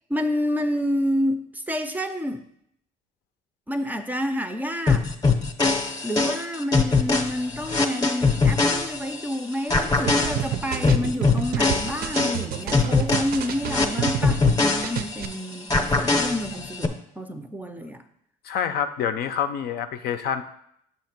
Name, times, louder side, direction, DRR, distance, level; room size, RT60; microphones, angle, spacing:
voice 1, 0.1-2.4 3.7-5.1 6.0-18.0, equal, 10° right, 8 dB, 0.4 m, -29 dB
sound 1, 4.9-9.3 9.7-15.3 15.7-16.9, left 4 dB, 25° left, 0.7 m, -22 dB
sound 2, 10.1-14.6 14.8-15.3, right 9 dB, 65° right, 0.5 m, -29 dB
voice 2, 18.4-20.4, left 8 dB, 70° left, 9 dB, 0.5 m, -27 dB
7.1 x 2.9 x 5.9 m, 0.72 s
cardioid pair, 110°, 17 cm